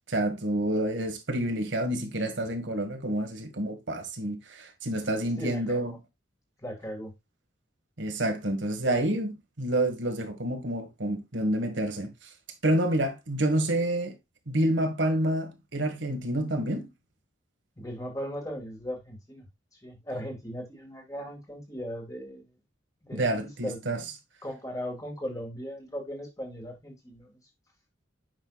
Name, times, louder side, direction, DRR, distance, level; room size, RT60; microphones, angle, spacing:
voice 1, 0.1-5.9 8.0-12.3 12.6-14.1 14.5-16.9 23.1-24.0, right 1 dB, 70° right, 1.5 m, -28 dB
voice 2, 5.4-6.0 6.6-7.1 17.8-19.5 19.8-22.4 23.0-24.1 24.4-27.4, equal, 15° left, 1.9 m, -38 dB
9.0 x 5.7 x 2.3 m
head